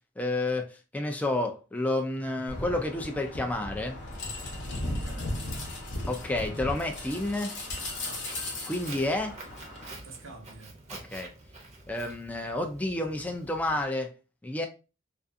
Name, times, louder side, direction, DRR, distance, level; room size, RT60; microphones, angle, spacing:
voice 1, 0.2-4.0 6.1-7.5 8.7-9.4 11.1-11.3 11.9-14.1 14.4-14.7, left 2 dB, 10° left, 0.3 m, -30 dB
sound 1, 2.5-9.9, left 1 dB, 60° left, 0.8 m, -36 dB
voice 2, 4.6-5.6 8.0-8.5 10.0-10.7, right 3 dB, 70° right, 0.8 m, -48 dB
Walk footsteps, 7.8-13.9, right 2 dB, 35° right, 0.6 m, -47 dB
2.4 x 2.4 x 2.5 m
head